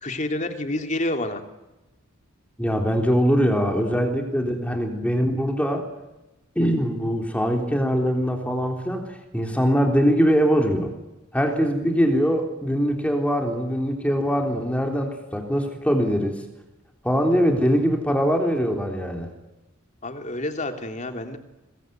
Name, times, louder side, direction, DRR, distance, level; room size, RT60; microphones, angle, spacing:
voice 1, 0.0-1.4 20.0-21.4, left 1 dB, 35° left, 6 dB, 3.1 m, -28 dB
voice 2, 2.6-5.9 6.6-10.9 11.3-16.4 17.0-19.3, equal, 5° left, 3 dB, 3.6 m, -22 dB
25.0 x 21.0 x 9.3 m, 0.99 s
head